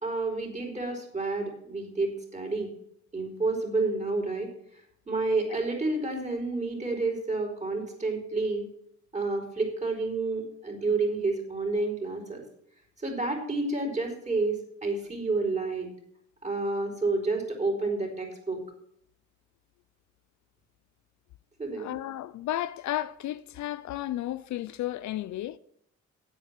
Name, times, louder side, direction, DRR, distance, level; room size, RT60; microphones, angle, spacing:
voice 1, 0.0-2.7 3.1-4.8 5.1-8.7 9.1-12.4 13.0-15.9 16.4-18.6 21.6-22.0, right 3 dB, 25° right, 4.6 m, -30 dB
voice 2, 21.8-25.6, left 14 dB, 70° left, 0.5 m, -33 dB
9.5 x 8.1 x 7.4 m
cardioid pair, 90°, 30 cm